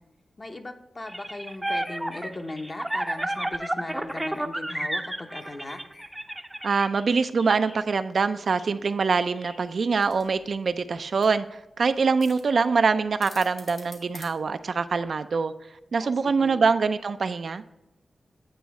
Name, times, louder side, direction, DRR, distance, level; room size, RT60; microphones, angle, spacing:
voice 1, 0.4-5.8 16.0-16.6, left 2 dB, 35° left, 0.8 m, -38 dB
sound 1, 1.1-6.9, right 1 dB, 15° right, 0.5 m, -31 dB
Bird vocalization bird call bird song, 1.5-2.2 2.7-3.4 3.9-4.5 5.1-6.1 6.9-7.8 8.6-8.7 9.1-9.6, left 1 dB, 55° left, 2.0 m, -51 dB
voice 2, 6.6-15.5 15.9-17.6, right 4 dB, 70° right, 0.4 m, -24 dB
sound 2, 9.9-15.0, left 2 dB, 80° left, 1.7 m, -49 dB
8.9 x 3.1 x 4.7 m
cardioid pair, 65°, 0 cm